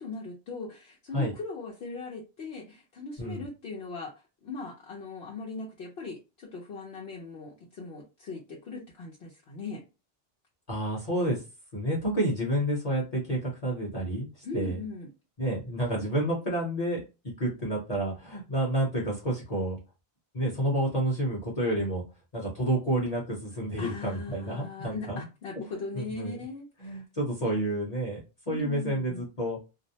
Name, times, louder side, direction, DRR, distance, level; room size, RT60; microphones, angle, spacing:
voice 1, 0.0-9.8 14.4-15.1 23.8-27.0 28.5-29.2, left 3 dB, 75° left, 0.9 m, -39 dB
voice 2, 10.7-11.4 11.7-14.8 15.4-17.0 17.4-19.8 20.3-22.0 22.3-25.2 25.9-26.4 26.8-28.2 28.5-29.6, right 1 dB, 40° left, 0.9 m, -29 dB
2.5 x 2.0 x 2.7 m
omnidirectional pair, 1.0 m